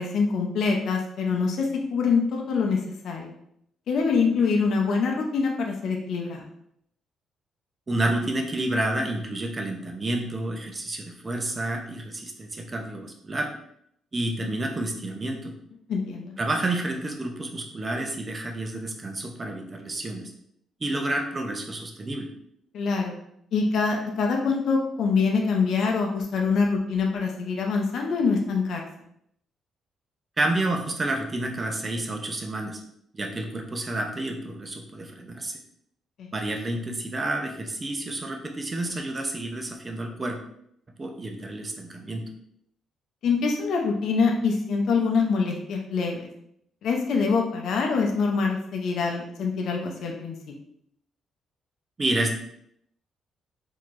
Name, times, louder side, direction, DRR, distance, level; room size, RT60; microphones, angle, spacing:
voice 1, 0.0-2.8 3.0-3.3 3.9-6.4 15.9-16.3 22.7-23.1 23.5-28.8 36.2-36.3 43.2-46.2 46.8-50.5, left 4 dB, 70° left, 1 dB, 0.6 m, -25 dB
voice 2, 7.9-13.5 14.1-15.5 16.4-20.3 20.8-22.3 30.4-32.8 33.1-35.6 36.3-40.4 41.0-42.2 52.0-52.3, right 1 dB, 30° right, 3 dB, 0.7 m, -29 dB
4.3 x 2.9 x 2.5 m, 0.72 s
cardioid pair, 90°, 0 cm